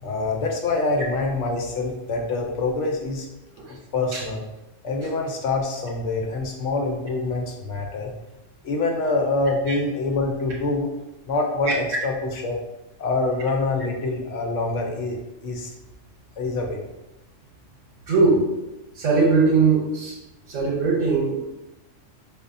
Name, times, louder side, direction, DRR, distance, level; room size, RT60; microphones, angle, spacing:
voice 1, 0.0-3.3 3.7-4.4 4.8-8.1 8.6-10.9 11.3-12.6 13.0-15.7 16.4-16.9, left 3 dB, 75° left, 1 dB, 1.0 m, -25 dB
voice 2, 18.1-18.5 19.0-20.2 20.5-21.3, right 4 dB, 80° right, -3 dB, 1.1 m, -19 dB
5.0 x 2.3 x 2.5 m, 0.97 s
omnidirectional pair, 1.3 m